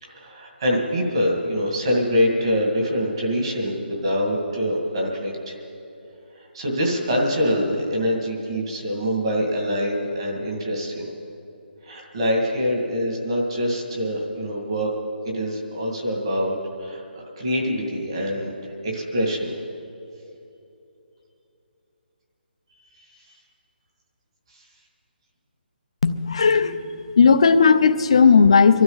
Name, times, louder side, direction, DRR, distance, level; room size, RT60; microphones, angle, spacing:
voice 1, 0.0-5.5 6.5-11.1 11.8-14.9 15.2-19.6, equal, 30° right, -1 dB, 2.1 m, -25 dB
voice 2, 26.0-26.8 27.2-28.8, left 5 dB, 30° left, 10 dB, 0.5 m, -15 dB
24.0 x 12.5 x 4.0 m, 2.8 s
hypercardioid pair, 180°, 6 cm